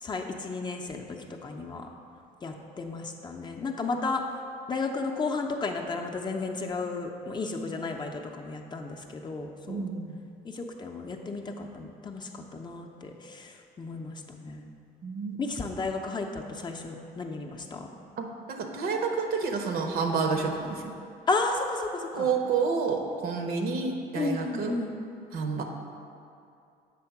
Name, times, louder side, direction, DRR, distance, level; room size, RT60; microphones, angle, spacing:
voice 1, 0.0-1.1 1.4-1.9 2.4-4.2 4.7-9.9 10.4-14.7 15.4-17.9 21.3-22.3 24.1-24.9, left 3 dB, 25° left, 2 dB, 0.6 m, -33 dB
voice 2, 9.7-10.2 15.0-15.4 18.2-20.9 22.1-24.7 25.3-25.6, right 5 dB, 65° right, 3 dB, 0.8 m, -29 dB
7.6 x 3.6 x 5.8 m, 2.5 s
cardioid pair, 110°, 17 cm